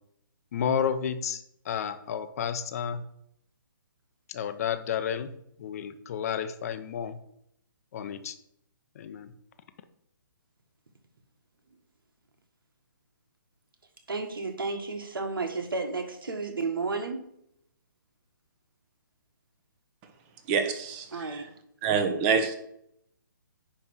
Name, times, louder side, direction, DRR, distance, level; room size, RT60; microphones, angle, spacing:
voice 1, 0.5-3.0 4.3-5.3 5.6-7.2 7.9-8.3 8.9-9.3, left 8 dB, 45° left, 10 dB, 0.9 m, -31 dB
voice 2, 14.1-17.2 21.1-21.5, right 3 dB, 80° right, 5 dB, 1.8 m, -32 dB
voice 3, 20.5-21.0 21.8-22.5, right 6 dB, 25° right, 7 dB, 1.1 m, -25 dB
9.8 x 3.4 x 6.3 m, 0.73 s
hypercardioid pair, 150°, 11 cm